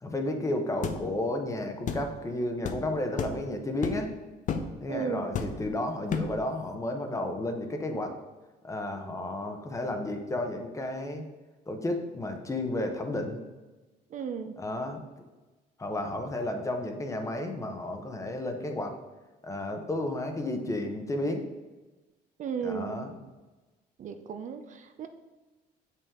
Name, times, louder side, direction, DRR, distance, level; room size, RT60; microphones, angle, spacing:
voice 1, 0.0-4.1 4.8-8.1 8.6-11.2 11.7-13.4 14.6-15.0 15.8-19.0 19.4-21.4 22.6-23.1, left 1 dB, 20° left, 5 dB, 0.9 m, -32 dB
sound 1, 0.8-1.0 1.9-2.1 2.6-2.8 3.2-3.4 3.8-4.1 4.5-4.7 5.3-5.7 6.1-6.4, left 6 dB, 50° left, 0.7 m, -31 dB
voice 2, 4.9-5.3 14.1-14.5 22.4-23.1 24.0-25.1, right 6 dB, 50° right, 8 dB, 0.5 m, -35 dB
7.0 x 5.5 x 3.7 m, 1.2 s
cardioid pair, 110°, 17 cm